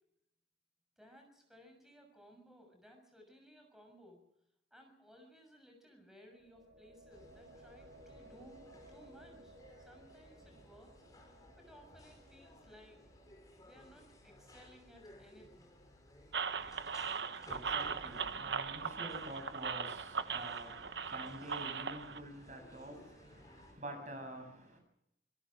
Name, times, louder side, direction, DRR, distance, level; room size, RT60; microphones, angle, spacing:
voice 1, 1.0-4.2 4.7-11.0 11.6-13.0 13.6-15.7, equal, 5° right, 3 dB, 6.5 m, -60 dB
sound 1, 6.3-16.2, right 1 dB, 70° right, 2.9 m, -61 dB
sound 2, 7.1-23.7, left 1 dB, 20° left, 5.5 m, -59 dB
sound 3, 16.3-22.2, right 6 dB, 85° right, 1.1 m, -39 dB
voice 2, 16.5-24.8, right 1 dB, 45° right, 5 dB, 7.3 m, -48 dB
26.5 x 18.0 x 6.2 m, 0.81 s
head